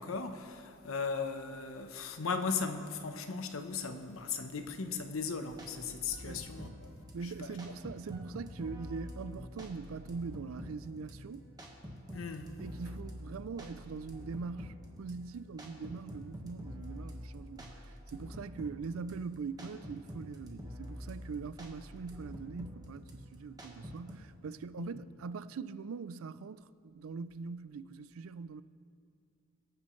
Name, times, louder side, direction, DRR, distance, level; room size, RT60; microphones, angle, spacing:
voice 1, 0.0-6.9 7.4-7.5 12.1-12.5 24.8-24.9, left 5 dB, 70° left, 0.9 m, -37 dB
sound 1, 5.5-24.1, equal, 20° right, 1.4 m, -47 dB
voice 2, 7.1-11.5 12.6-28.6, right 4 dB, 75° right, 0.4 m, -42 dB
23.5 x 9.6 x 3.2 m
head